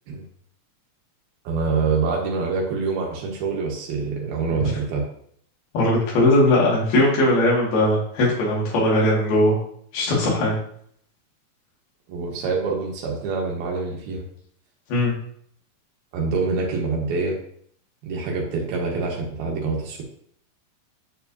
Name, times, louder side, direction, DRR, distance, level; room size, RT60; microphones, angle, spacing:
voice 1, 1.4-5.0 12.1-14.3 16.1-17.4 18.0-20.0, right 4 dB, 90° right, -2 dB, 3.3 m, -25 dB
voice 2, 5.7-9.6 9.9-10.5 14.9-15.1, left 1 dB, 85° left, -5 dB, 4.1 m, -19 dB
8.8 x 7.0 x 2.7 m, 0.63 s
omnidirectional pair, 4.3 m